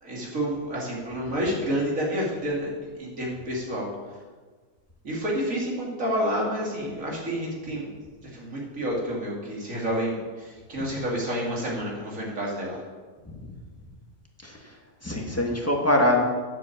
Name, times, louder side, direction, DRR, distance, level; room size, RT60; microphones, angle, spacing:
voice 1, 0.0-3.9 5.0-7.9 8.3-12.8, equal, 55° right, -3 dB, 3.3 m, -29 dB
voice 2, 14.4-14.7 15.0-16.3, left 1 dB, 10° left, 0 dB, 1.5 m, -24 dB
9.5 x 7.6 x 7.4 m, 1.4 s
omnidirectional pair, 1.7 m